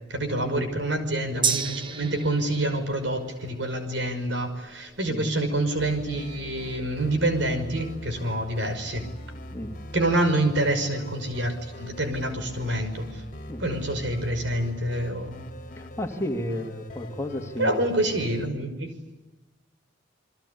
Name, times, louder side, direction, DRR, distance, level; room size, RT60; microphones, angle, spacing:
voice 1, 0.1-9.1 9.9-13.2 13.6-15.4 17.6-18.9, right 1 dB, 65° right, 7 dB, 5.7 m, -27 dB
Gong, 1.4-9.2 9.5-9.6, right 6 dB, 25° right, 1.0 m, -36 dB
sound 1, 5.8-18.5, equal, 40° left, 2.4 m, -42 dB
voice 2, 15.8-17.8, left 1 dB, 15° left, 4 dB, 2.4 m, -32 dB
29.5 x 22.5 x 8.5 m, 1.0 s
head